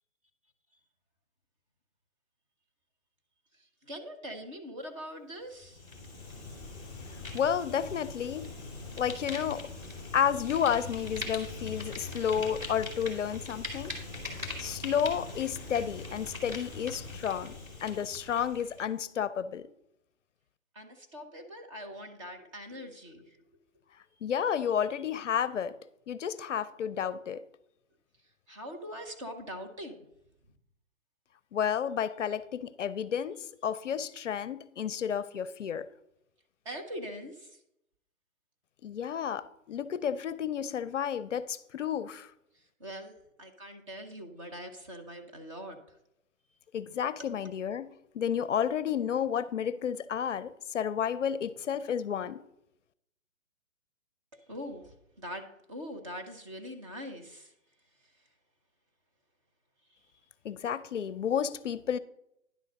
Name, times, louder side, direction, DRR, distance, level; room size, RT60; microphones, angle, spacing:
voice 1, 3.6-5.8 20.7-23.4 28.5-30.1 36.6-37.6 42.8-45.8 54.5-57.5, equal, 25° right, 0.8 m, -42 dB
Fire, 5.5-18.9, left 3 dB, 10° right, 1.3 m, -41 dB
voice 2, 7.3-8.5 9.0-9.7 10.1-14.0 14.2-17.5 17.8-19.7 24.2-25.8 26.1-27.4 31.5-35.9 38.8-42.3 46.7-52.4 60.4-62.0, left 8 dB, 60° left, 0.5 m, -31 dB
10.0 x 3.8 x 6.3 m
hypercardioid pair, 160°, 40 cm